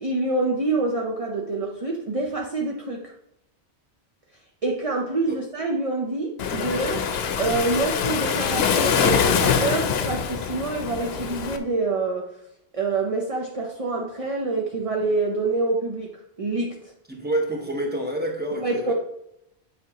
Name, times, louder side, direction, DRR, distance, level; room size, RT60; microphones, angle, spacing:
voice 1, 0.0-3.1 4.6-7.1 7.4-12.3 12.7-16.9 18.6-18.9, right 3 dB, 35° right, 0 dB, 0.8 m, -26 dB
Waves surf, 6.4-11.6, left 7 dB, 75° left, 0.9 m, -24 dB
voice 2, 17.1-18.9, right 1 dB, 10° right, 1 dB, 1.2 m, -28 dB
9.3 x 5.1 x 2.9 m, 0.78 s
omnidirectional pair, 1.1 m